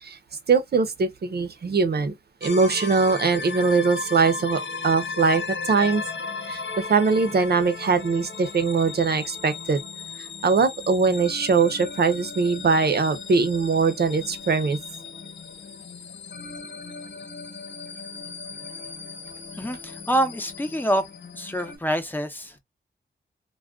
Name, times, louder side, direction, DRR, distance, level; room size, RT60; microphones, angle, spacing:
voice 1, 0.5-2.1 2.4-6.0 6.4-9.8 10.2-14.8, right 4 dB, 60° right, 0.7 m, -22 dB
sound 1, 2.4-21.8, left 4 dB, 90° left, 1.2 m, -36 dB
voice 2, 19.5-21.0 21.3-22.6, right 1 dB, 10° left, 0.7 m, -26 dB
2.3 x 2.2 x 3.5 m
wide cardioid pair, 75°, 18 cm